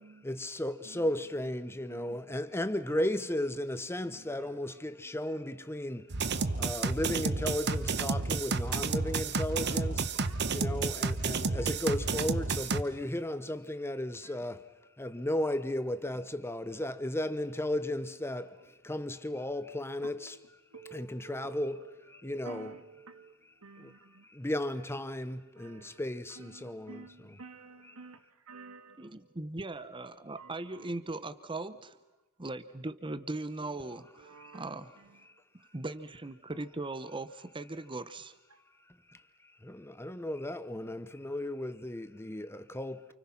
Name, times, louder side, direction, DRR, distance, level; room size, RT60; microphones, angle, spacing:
voice 1, 0.2-6.1 6.6-14.6 15.0-18.5 18.8-20.3 20.9-21.8 22.1-22.7 23.8-23.9 24.3-27.0 39.6-43.1, left 1 dB, 10° left, 0.9 m, -35 dB
voice 2, 1.4-2.5 4.0-6.1 7.7-7.9 9.6-10.8 11.6-12.5 14.2-14.4 16.7-17.1 20.0-23.3 23.6-24.3 24.9-25.0 25.6-26.0 26.3-29.3 30.2-31.4 33.6-35.4 38.5-38.7, right 4 dB, 85° right, 1.8 m, -53 dB
sound 1, 6.1-12.8, right 4 dB, 50° right, 1.1 m, -31 dB
voice 3, 29.0-32.0 32.4-35.0 35.6-38.3, right 2 dB, 25° right, 0.9 m, -39 dB
29.5 x 28.5 x 5.9 m
head